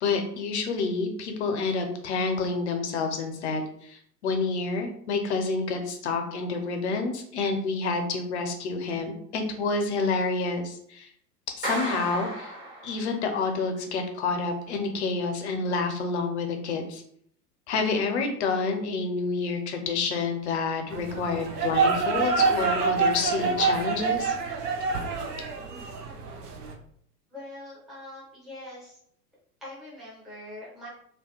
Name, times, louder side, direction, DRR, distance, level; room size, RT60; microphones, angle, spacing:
voice 1, 0.0-11.1 11.6-12.5 12.8-17.0 17.7-24.4, left 4 dB, 45° left, 5 dB, 0.5 m, -28 dB
Clapping, 11.6-13.3, right 1 dB, 30° right, 1.2 m, -34 dB
sound 1, 20.9-26.7, right 5 dB, 70° right, 0.6 m, -26 dB
voice 2, 27.3-29.0 29.6-30.9, left 1 dB, ahead, -8 dB, 0.6 m, -43 dB
2.7 x 2.2 x 2.3 m, 0.65 s
figure-of-eight pair, 100°, 50 cm